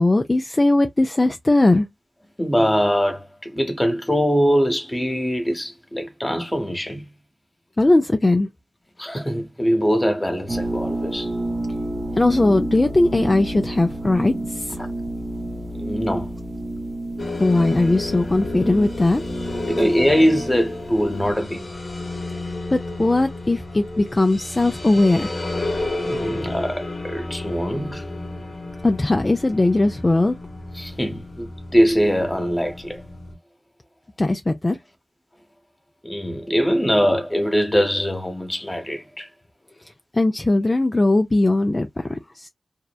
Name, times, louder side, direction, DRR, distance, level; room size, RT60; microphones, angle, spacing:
voice 1, 0.0-1.9 7.8-8.5 12.2-14.8 17.4-19.2 22.7-25.3 28.8-30.3 34.2-34.8 40.1-42.5, left 2 dB, 35° left, 0.3 m, -19 dB
voice 2, 2.4-7.1 9.0-11.3 15.7-16.3 19.6-21.7 26.0-28.1 30.8-33.0 36.0-39.3, equal, 20° left, 1.0 m, -22 dB
sound 1, 10.5-21.3, right 1 dB, 55° right, 0.6 m, -30 dB
sound 2, 17.2-33.3, left 2 dB, 65° left, 0.9 m, -32 dB
2.6 x 2.1 x 2.2 m
cardioid pair, 45°, 0 cm